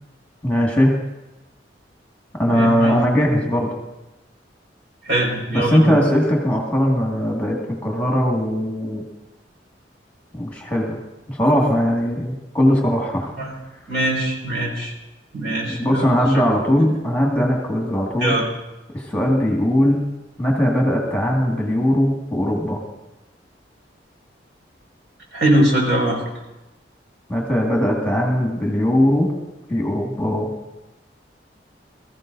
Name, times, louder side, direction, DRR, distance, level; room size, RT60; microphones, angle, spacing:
voice 1, 0.4-0.9 2.4-3.8 5.5-9.0 10.3-11.0 11.3-13.3 15.8-18.3 18.9-20.0 20.4-22.8 27.3-29.3 29.7-30.5, equal, 10° left, -1 dB, 1.9 m, -19 dB
voice 2, 2.5-3.0 5.1-6.0 13.4-13.5 13.9-14.9 15.3-16.1 18.2-18.4 25.3-26.2, right 1 dB, 70° right, -2 dB, 5.3 m, -21 dB
22.5 x 14.5 x 2.7 m, 0.99 s
head